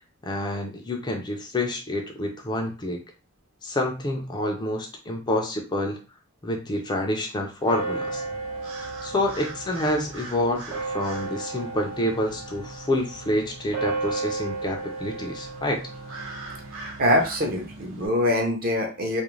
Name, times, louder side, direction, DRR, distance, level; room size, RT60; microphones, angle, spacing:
voice 1, 0.2-3.0 3.6-6.0 6.4-8.2 9.0-15.8, left 1 dB, 20° left, 2 dB, 0.4 m, -28 dB
sound 1, 7.6-18.1, right 3 dB, 75° right, 0.8 m, -34 dB
voice 2, 17.0-19.2, left 1 dB, 45° right, 1 dB, 0.7 m, -23 dB
2.4 x 2.1 x 3.0 m, 0.32 s
head